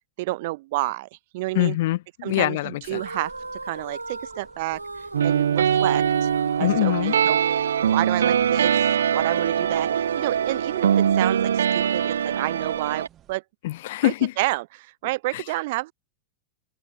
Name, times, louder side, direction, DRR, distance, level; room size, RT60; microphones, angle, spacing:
voice 1, 0.2-1.1 1.3-1.8 2.2-3.3 3.6-4.8 5.2-6.3 6.6-7.4 7.9-13.4 14.0-15.9, right 20 dB, 50° right, 1.9 m, -30 dB
voice 2, 1.5-3.0 6.6-7.1 13.6-14.3 15.3-15.4, left 16 dB, 55° left, 0.6 m, -24 dB
sound 1, 2.8-13.4, right 11 dB, 30° right, 5.4 m, -57 dB
sound 2, 2.8-7.7, right 2 dB, 80° right, 2.0 m, -38 dB
sound 3, 5.1-13.1, right 8 dB, 65° right, 0.3 m, -22 dB
open air
figure-of-eight pair, 90°, 0 cm